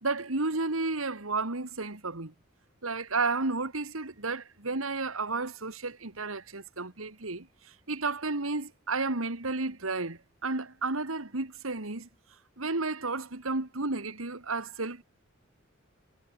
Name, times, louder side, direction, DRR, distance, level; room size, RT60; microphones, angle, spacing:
voice 1, 0.0-2.3 2.8-12.1 12.6-15.0, right 3 dB, 85° right, 2.4 m, -32 dB
head